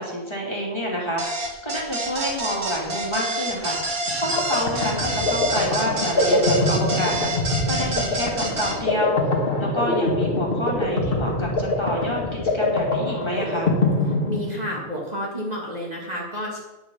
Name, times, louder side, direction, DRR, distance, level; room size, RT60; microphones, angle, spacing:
voice 1, 0.0-7.3 7.7-9.3 9.6-13.7, equal, 20° left, -3 dB, 2.9 m, -29 dB
sound 1, 1.2-8.7, right 2 dB, 90° right, 2.4 m, -27 dB
sound 2, 4.1-14.9, left 2 dB, 40° left, 1.9 m, -24 dB
voice 2, 14.3-16.6, equal, 30° right, -3 dB, 2.1 m, -30 dB
9.9 x 9.8 x 5.7 m, 1.1 s
omnidirectional pair, 1.4 m